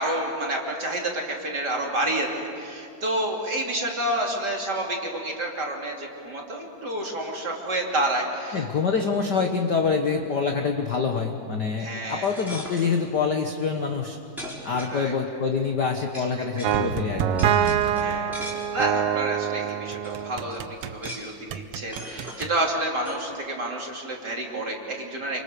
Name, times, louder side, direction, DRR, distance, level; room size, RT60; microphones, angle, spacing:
voice 1, 0.0-8.7 11.8-12.3 14.9-15.1 17.6-25.4, right 1 dB, 35° right, 0 dB, 3.4 m, -29 dB
voice 2, 8.5-14.2 14.6-17.4 17.9-18.2, left 5 dB, 55° left, 4 dB, 1.2 m, -26 dB
sound 1, 12.1-13.0 13.9-14.0 14.4-15.4 16.1-16.3 16.6-16.8 17.4-19.0 19.6-19.7 20.0-20.2 20.5-21.4 21.9-22.5 23.0-23.2, equal, ahead, 4.9 m, -39 dB
sound 2, 16.6-21.1 21.5-22.5, right 9 dB, 70° right, 1.5 m, -26 dB
29.0 x 26.0 x 6.8 m, 2.6 s
omnidirectional pair, 3.5 m